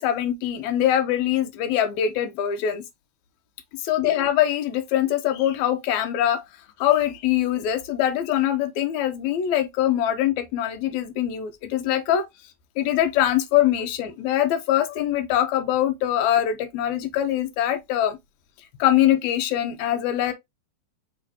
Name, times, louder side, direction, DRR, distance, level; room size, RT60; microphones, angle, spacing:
voice 1, 0.0-2.8 3.8-6.4 6.8-12.2 12.8-18.2 18.8-20.3, left 11 dB, 90° left, 1.6 m, -23 dB
6.2 x 3.1 x 2.7 m
omnidirectional pair, 4.1 m